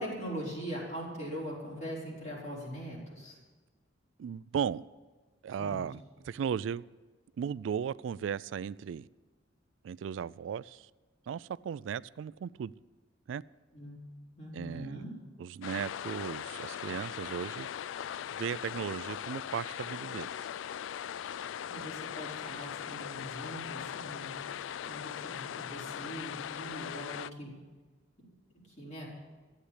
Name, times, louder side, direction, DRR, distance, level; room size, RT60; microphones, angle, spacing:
voice 1, 0.0-3.4 5.6-5.8 13.7-14.0 14.3-15.1 21.7-24.3 24.8-27.6 28.2-28.3 28.8-29.1, equal, 40° left, 4.5 m, -41 dB
voice 2, 4.2-4.8 5.4-6.8 7.4-9.1 9.8-10.9 11.3-12.7 13.3-13.4 14.5-15.0 15.4-17.7 18.3-20.3, right 7 dB, 85° right, 0.3 m, -36 dB
sound 1, 15.6-27.3, left 9 dB, 85° left, 0.3 m, -40 dB
13.0 x 8.4 x 8.3 m
head